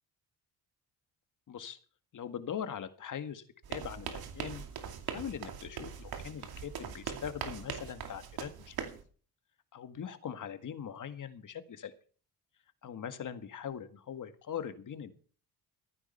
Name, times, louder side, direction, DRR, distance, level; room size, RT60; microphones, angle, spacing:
voice 1, 1.5-1.8 2.1-4.6 5.1-8.8 9.7-11.9 12.8-15.1, left 8 dB, 55° left, 9 dB, 1.8 m, -41 dB
sound 1, 3.6-9.0, right 8 dB, 70° right, 2.6 m, -41 dB
14.5 x 9.7 x 5.7 m, 0.43 s
cardioid pair, 85°, 38 cm